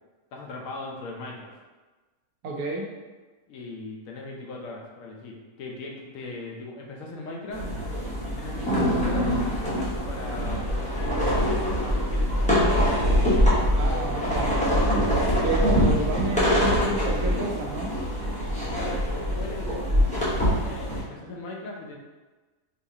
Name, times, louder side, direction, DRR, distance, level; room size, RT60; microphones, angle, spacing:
voice 1, 0.3-1.5 3.5-7.7 8.2-9.3 10.1-12.7 18.7-21.9, left 2 dB, 70° left, -1 dB, 0.9 m, -39 dB
voice 2, 2.4-2.9 13.7-14.5 15.4-17.9, right 2 dB, 80° right, -1 dB, 1.1 m, -30 dB
sound 1, 7.5-21.0, equal, 10° left, 0.5 m, -24 dB
3.9 x 2.5 x 2.7 m, 1.2 s
omnidirectional pair, 1.6 m